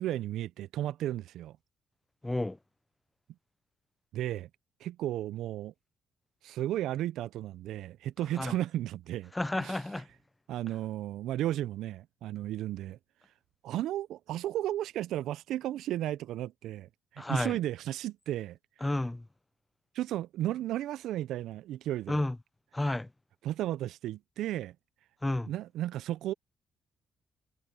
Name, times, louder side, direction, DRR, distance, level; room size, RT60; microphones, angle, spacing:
voice 1, 0.0-1.6 4.1-4.5 4.8-5.7 6.4-9.3 9.6-9.8 10.5-13.0 13.6-18.6 19.9-22.2 23.4-24.8 25.5-26.3, right 13 dB, 85° right, 0.3 m, -34 dB
voice 2, 2.2-2.6 8.4-8.5 9.3-10.1 17.2-17.6 18.8-19.3 22.1-22.4 22.7-23.1 25.2-25.5, left 1 dB, 10° left, 0.4 m, -31 dB
cardioid pair, 90°, 0 cm